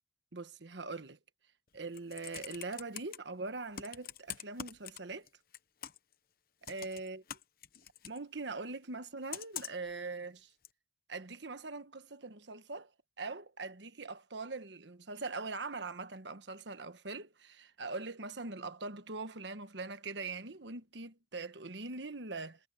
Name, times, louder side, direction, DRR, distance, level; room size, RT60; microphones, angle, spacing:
voice 1, 0.3-1.2 1.7-5.3 6.6-7.2 8.0-10.5 11.1-12.9 13.2-22.6, right 3 dB, 70° right, 1.3 m, -42 dB
Computer keyboard, 1.7-3.2 3.7-5.3 5.5-6.1 6.6-8.2 9.3-9.9 10.6-10.7, left 9 dB, 50° left, 1.0 m, -44 dB
head